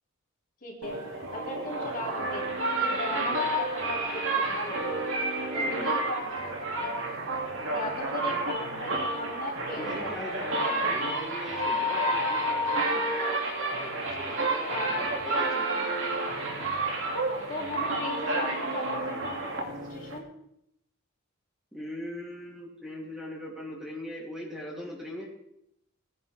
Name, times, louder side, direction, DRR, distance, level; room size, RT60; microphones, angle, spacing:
voice 1, 0.6-5.0 5.5-7.0 7.7-10.3 14.7-14.9 17.5-20.3, left 2 dB, 45° left, -2 dB, 3.0 m, -38 dB
sound 1, 0.8-20.2, right 2 dB, 65° right, 2.4 m, -30 dB
voice 2, 5.6-5.9 9.8-16.0 21.7-25.3, left 1 dB, 5° right, -3 dB, 2.9 m, -40 dB
18.5 x 10.0 x 3.5 m, 0.77 s
head